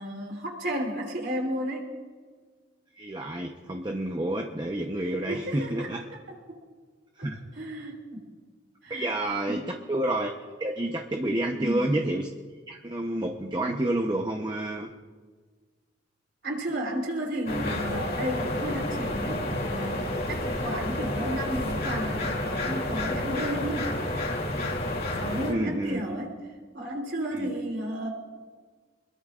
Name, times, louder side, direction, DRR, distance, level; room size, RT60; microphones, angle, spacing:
voice 1, 0.0-1.9 5.0-5.9 7.2-8.3 8.8-9.1 9.5-9.7 11.5-11.9 16.4-20.0 20.3-23.9 25.2-26.4 26.7-28.1, right 1 dB, 60° right, 1 dB, 3.6 m, -33 dB
voice 2, 3.0-6.0 7.2-7.4 8.9-9.6 9.9-10.3 10.6-12.3 12.7-14.9 25.5-26.0 27.3-27.5, right 1 dB, 25° right, 2 dB, 0.9 m, -29 dB
sound 1, 17.5-25.5, left 1 dB, 50° left, 2.9 m, -30 dB
25.5 x 21.5 x 2.5 m, 1.5 s
head